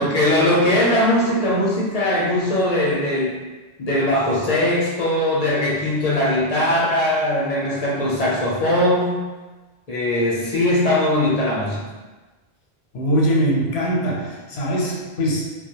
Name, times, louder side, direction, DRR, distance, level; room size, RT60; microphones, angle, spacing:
voice 1, 0.0-3.4 3.8-9.2 9.9-11.8, left 1 dB, 45° left, -5 dB, 0.5 m, -20 dB
voice 2, 12.9-15.5, equal, 90° left, -2 dB, 0.9 m, -22 dB
2.3 x 2.2 x 2.8 m, 1.2 s
omnidirectional pair, 1.0 m